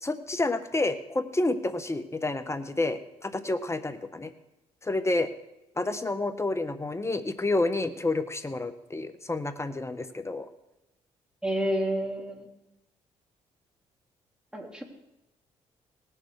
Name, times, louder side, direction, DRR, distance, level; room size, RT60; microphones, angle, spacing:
voice 1, 0.0-4.3 4.8-5.3 5.8-10.5, left 2 dB, 20° left, 10 dB, 1.4 m, -29 dB
voice 2, 11.4-12.5 14.5-14.8, equal, 5° right, 0 dB, 3.5 m, -29 dB
19.0 x 6.9 x 5.0 m, 0.92 s
supercardioid pair, 55°, 14 cm